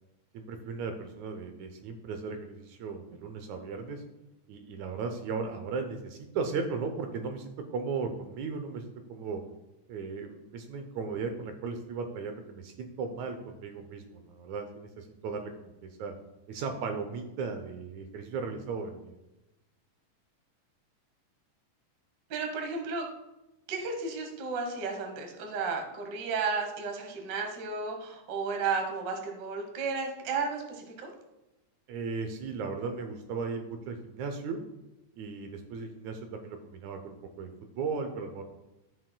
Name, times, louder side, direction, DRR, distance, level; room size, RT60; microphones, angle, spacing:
voice 1, 0.3-4.0 4.5-9.4 9.9-16.1 16.5-19.1 31.9-34.6 35.2-38.4, right 4 dB, 75° right, 6 dB, 1.9 m, -36 dB
voice 2, 22.3-23.0 23.7-31.1, right 4 dB, 55° right, 3 dB, 1.2 m, -33 dB
13.0 x 6.3 x 2.2 m, 0.98 s
omnidirectional pair, 3.6 m